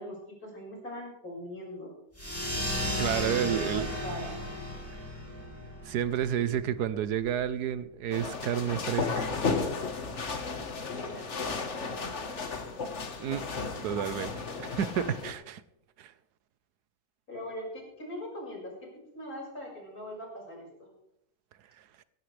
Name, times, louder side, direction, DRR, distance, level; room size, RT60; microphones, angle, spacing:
voice 1, 0.0-1.9 3.2-4.4 11.0-12.2 17.3-20.9, equal, 65° left, -2 dB, 6.2 m, -42 dB
sound 1, 2.1-7.2, left 1 dB, 10° left, 3.4 m, -35 dB
voice 2, 3.0-3.9 5.8-9.3 13.2-13.4 13.8-14.3 14.6-15.6 16.0-16.1, right 9 dB, 85° right, 15 dB, 1.3 m, -30 dB
sound 2, 8.1-15.3, left 4 dB, 50° left, 1.7 m, -34 dB
16.5 x 16.0 x 3.4 m, 0.79 s
omnidirectional pair, 1.7 m